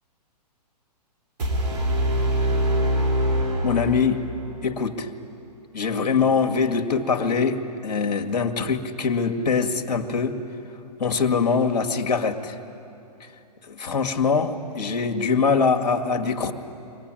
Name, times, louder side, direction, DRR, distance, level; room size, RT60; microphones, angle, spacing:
sound 1, 1.4-4.4, equal, 70° right, 3.5 m, -23 dB
voice 1, 3.6-4.2 4.6-5.1 5.7-10.4 11.0-12.6 13.7-16.5, left 5 dB, 80° left, 3 dB, 1.9 m, -23 dB
24.0 x 18.5 x 8.9 m, 2.9 s
hypercardioid pair, 135°, 21 cm